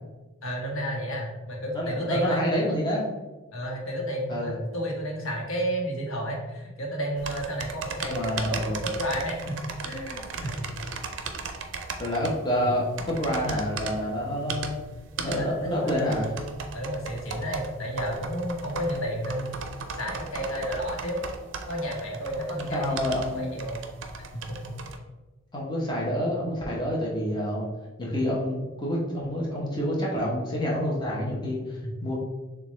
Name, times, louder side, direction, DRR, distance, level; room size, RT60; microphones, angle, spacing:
voice 1, 0.4-2.4 3.5-10.7 12.7-12.8 14.5-14.6 15.2-19.6 20.0-21.2 21.7-23.9 24.3-24.7 31.8-31.9, equal, 80° left, -1 dB, 1.0 m, -32 dB
voice 2, 1.7-3.1 4.3-4.6 8.1-8.8 12.0-14.8 15.2-16.3 22.7-23.5 25.5-27.7 28.0-32.2, equal, 20° left, -4 dB, 0.8 m, -28 dB
sound 1, 7.2-25.0, right 4 dB, 60° right, 0.5 m, -37 dB
6.5 x 2.3 x 3.1 m, 1.2 s
head